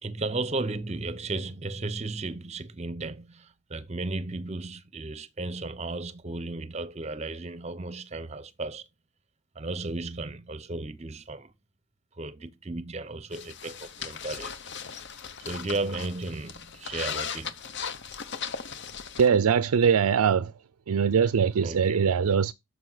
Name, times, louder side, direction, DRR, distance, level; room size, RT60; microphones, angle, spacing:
voice 1, 0.0-8.9 9.6-11.5 12.1-14.6 15.4-17.6 21.6-22.1, right 2 dB, 30° right, 0.7 m, -34 dB
sound 1, 13.3-19.3, left 7 dB, 50° left, 0.8 m, -38 dB
voice 2, 19.2-20.5 20.9-22.5, right 6 dB, 85° right, 0.4 m, -22 dB
9.1 x 6.7 x 3.9 m
head